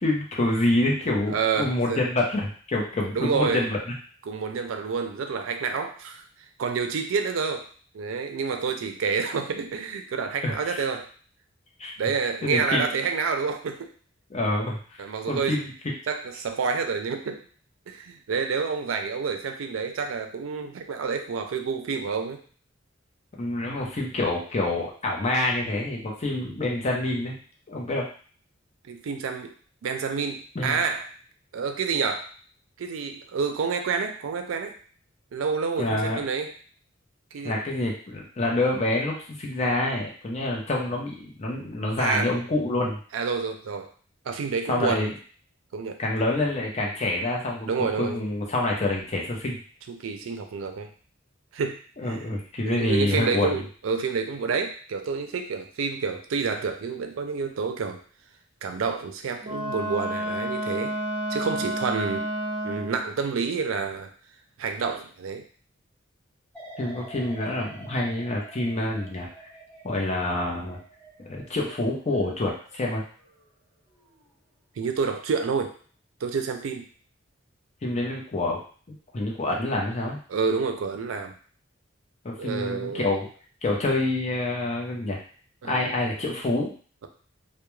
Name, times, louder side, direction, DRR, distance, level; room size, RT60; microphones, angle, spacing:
voice 1, 0.0-3.8 10.4-10.8 11.8-11.9 12.4-12.8 14.3-15.7 23.4-27.4 27.7-28.1 30.5-30.8 35.8-36.2 37.4-43.0 44.7-45.1 46.0-49.6 52.0-53.6 66.8-69.3 69.8-70.8 71.3-73.0 77.8-78.6 78.9-80.2 82.2-83.3 83.6-85.2 85.6-86.7, left 2 dB, 35° left, -2 dB, 0.6 m, -27 dB
voice 2, 1.3-2.0 3.2-3.7 4.3-6.2 6.6-7.7 7.9-11.1 12.0-13.9 15.0-15.6 16.1-17.4 17.9-22.4 23.6-23.8 28.8-29.5 29.8-31.1 31.5-32.3 32.8-34.7 35.3-36.5 37.3-37.6 42.0-42.3 43.1-43.9 44.3-45.1 45.7-46.0 47.7-48.2 49.9-50.9 51.5-51.8 52.1-52.2 52.6-58.0 58.6-60.9 61.3-62.3 62.6-64.1 64.6-65.4 74.8-75.7 76.2-76.9 80.3-81.3 82.4-83.1 85.6-85.8, right 5 dB, 85° right, 6 dB, 0.4 m, -28 dB
Wind instrument woodwind instrument, 59.4-63.1, equal, 25° right, 0.4 m, -30 dB
sound 1, 66.5-73.5 73.9-74.3, right 1 dB, 5° left, 0.9 m, -48 dB
2.3 x 2.1 x 3.0 m, 0.43 s
head